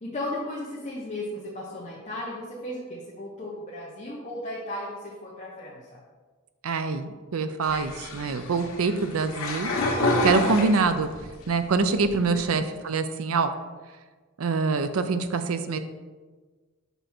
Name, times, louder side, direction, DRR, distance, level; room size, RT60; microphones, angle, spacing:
voice 1, 0.0-5.8 10.1-10.6 12.2-12.6, left 1 dB, 35° left, -5 dB, 1.0 m, -35 dB
voice 2, 6.6-9.7 10.2-11.1 11.5-13.5 14.4-15.8, right 4 dB, 90° right, 9 dB, 0.5 m, -25 dB
sound 1, 7.6-11.3 11.7-12.4, left 2 dB, 80° left, 1.0 m, -28 dB
6.1 x 5.4 x 4.3 m, 1.4 s
head